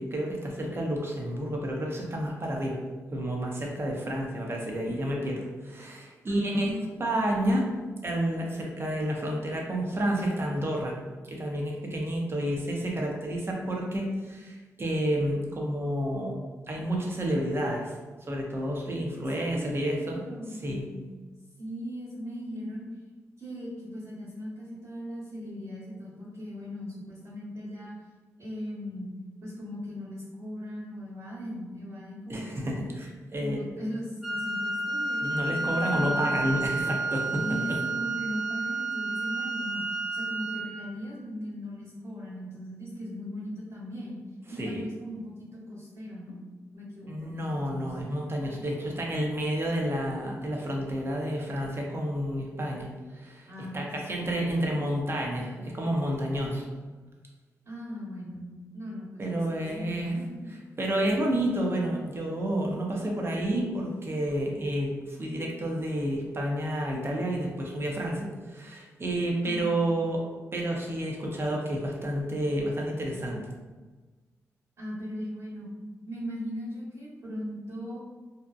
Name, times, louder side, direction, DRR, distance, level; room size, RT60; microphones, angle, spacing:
voice 1, 0.0-2.8 3.1-6.7 7.0-7.6 8.0-10.9 11.3-16.4 16.7-18.0 18.2-20.2 20.5-20.9 32.3-33.6 35.2-37.8 44.6-44.9 47.1-53.5 53.7-56.7 59.2-60.1 60.8-70.2 70.5-73.5, right 1 dB, 40° right, -1 dB, 0.7 m, -30 dB
voice 2, 6.3-6.9 19.1-21.1 21.6-22.9 23.4-28.0 28.4-29.1 29.4-32.7 33.4-36.6 37.4-44.2 44.5-46.4 46.7-48.1 53.5-54.6 57.6-60.5 69.4-69.9 74.8-75.7 76.0-78.0, equal, 75° right, -16 dB, 1.3 m, -39 dB
Wind instrument woodwind instrument, 34.2-40.9, right 2 dB, ahead, 0.8 m, -31 dB
2.7 x 2.1 x 2.4 m, 1.3 s
supercardioid pair, 45°, 6 cm